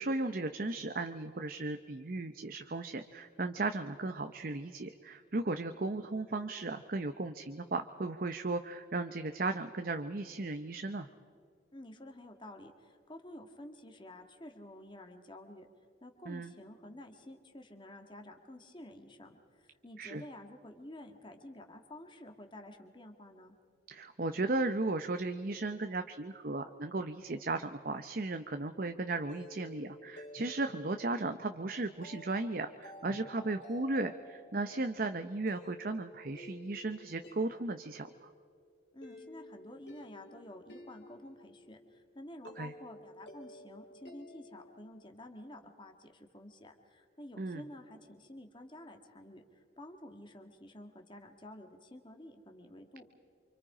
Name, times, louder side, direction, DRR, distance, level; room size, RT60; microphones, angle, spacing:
voice 1, 0.0-11.1 16.3-16.5 20.0-20.2 23.9-38.3 42.6-42.7 47.4-47.6, right 2 dB, 45° right, 8 dB, 0.8 m, -36 dB
voice 2, 11.7-15.7 16.0-23.6 38.9-53.1, left 1 dB, 25° left, 4 dB, 1.9 m, -51 dB
sound 1, 29.0-44.9, left 1 dB, 60° left, 3.2 m, -53 dB
28.5 x 25.5 x 5.0 m, 2.2 s
head